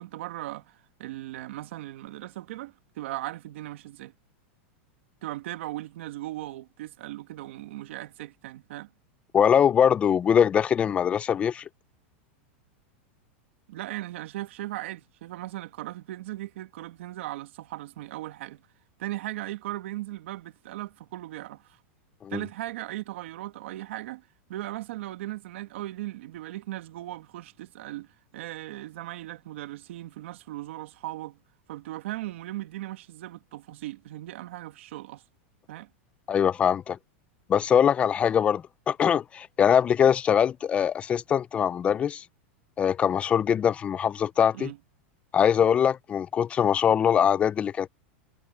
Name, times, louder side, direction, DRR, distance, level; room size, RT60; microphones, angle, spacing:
voice 1, 0.0-4.1 5.2-8.9 13.7-18.6 19.0-21.8 22.3-31.4 31.7-35.2 35.7-35.9 44.5-44.8, right 16 dB, 70° right, 1.9 m, -38 dB
voice 2, 9.3-11.6 22.2-22.4 36.3-37.0 37.5-42.2 42.8-44.7 45.3-47.9, left 8 dB, 15° left, 0.4 m, -22 dB
supercardioid pair, 155°, 7 cm